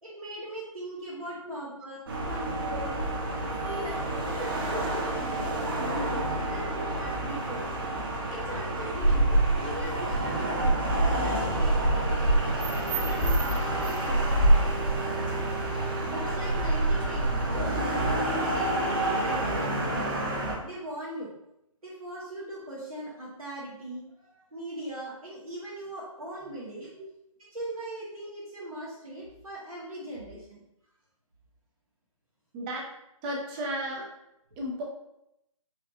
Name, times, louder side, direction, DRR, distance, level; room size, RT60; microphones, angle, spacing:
voice 1, 0.0-3.0 3.6-5.5 5.9-7.7 8.3-10.6 10.9-12.2 12.9-14.5 16.1-20.1 20.6-21.3 21.8-26.9 27.5-30.6, right 1 dB, 90° right, -8 dB, 1.5 m, -40 dB
sound 1, 2.1-20.5, right 1 dB, 40° right, 1.2 m, -27 dB
sound 2, 8.1-14.7, left 2 dB, 30° left, 0.9 m, -43 dB
voice 2, 33.2-34.1 34.6-34.8, equal, 15° right, -2 dB, 0.5 m, -35 dB
5.6 x 3.2 x 2.5 m, 0.83 s
figure-of-eight pair, 145°, 18 cm